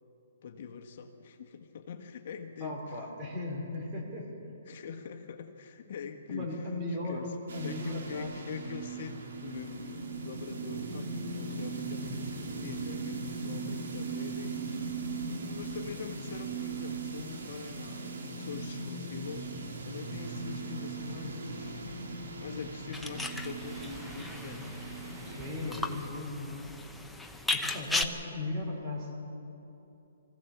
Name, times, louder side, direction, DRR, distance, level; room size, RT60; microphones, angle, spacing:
voice 1, 0.4-3.1 4.6-7.4 7.6-14.9 15.4-21.8 22.4-25.0 25.6-25.9, left 6 dB, 50° left, 4 dB, 1.4 m, -44 dB
voice 2, 2.6-4.3 6.3-8.6 25.2-26.6 27.2-29.3, left 2 dB, 25° right, -2 dB, 5.0 m, -37 dB
sound 1, 7.5-26.1, right 3 dB, 75° right, 3.0 m, -39 dB
sound 2, 22.9-28.0, left 2 dB, ahead, 0.8 m, -36 dB
23.5 x 16.0 x 7.2 m, 2.9 s
hypercardioid pair, 155°, 0 cm